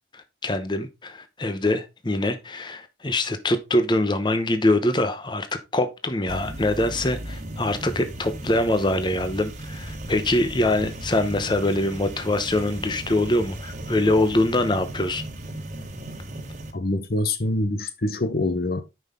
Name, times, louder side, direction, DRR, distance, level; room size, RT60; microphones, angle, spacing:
voice 1, 0.1-5.5 5.7-15.2, left 1 dB, 25° left, 0.9 m, -24 dB
sound 1, 6.3-16.7, right 1 dB, 40° right, 1.5 m, -36 dB
voice 2, 16.7-18.8, left 2 dB, 55° left, 0.8 m, -25 dB
9.6 x 5.6 x 3.7 m
head